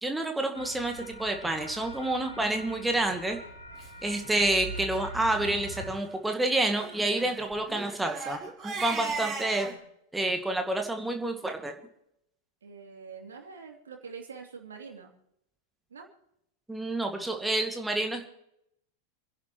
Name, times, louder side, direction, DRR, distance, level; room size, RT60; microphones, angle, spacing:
voice 1, 0.0-3.4 4.0-9.7 10.1-11.7 16.7-18.2, right 2 dB, 5° right, 4 dB, 2.1 m, -29 dB
sound 1, 0.5-5.9, right 2 dB, 85° left, 7.4 m, -43 dB
Crying sobbing, 2.9-3.1 3.8-3.9 4.2-4.3 4.6-4.8 5.3-5.5 6.7-9.8, right 4 dB, 25° right, 4.8 m, -37 dB
voice 2, 12.6-15.1 15.9-16.1, right 5 dB, 70° right, 3 dB, 2.9 m, -45 dB
28.5 x 11.0 x 3.1 m, 0.77 s
figure-of-eight pair, 90°, 0 cm